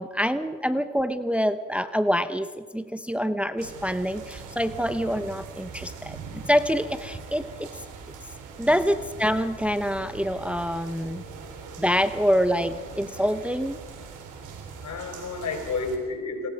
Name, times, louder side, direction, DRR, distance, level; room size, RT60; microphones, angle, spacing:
voice 1, 0.0-7.7 8.6-11.2 11.8-13.8, equal, 5° right, 11 dB, 0.9 m, -26 dB
sound 1, 3.6-16.0, right 5 dB, 85° right, 4.0 m, -42 dB
voice 2, 11.0-11.9 14.8-16.5, left 4 dB, 65° left, 6 dB, 4.4 m, -33 dB
29.0 x 20.5 x 5.2 m, 1.5 s
cardioid pair, 90°, 30 cm